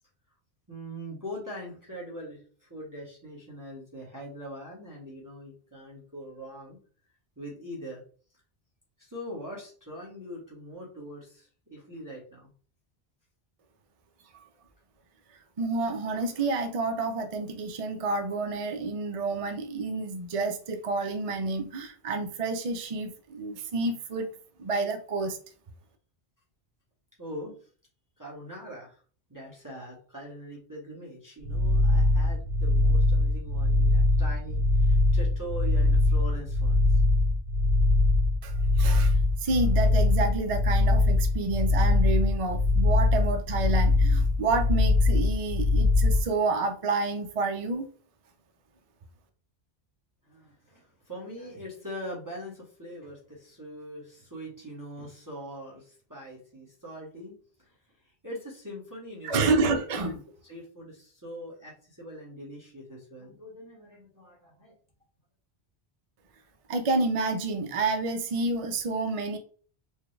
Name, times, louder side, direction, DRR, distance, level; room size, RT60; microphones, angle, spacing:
voice 1, 0.7-6.8 7.4-8.0 9.0-12.5 27.2-27.7 28.2-29.0 29.3-37.0 50.2-57.3 57.6-59.6 60.1-64.7, equal, 20° right, 1.0 m, -42 dB
voice 2, 15.6-24.3 24.6-25.4 38.4-47.9 59.2-60.2 66.7-69.4, right 3 dB, 45° right, 0.5 m, -29 dB
sound 1, 31.4-46.2, left 2 dB, 70° right, 1.1 m, -22 dB
4.6 x 2.2 x 3.2 m
omnidirectional pair, 1.1 m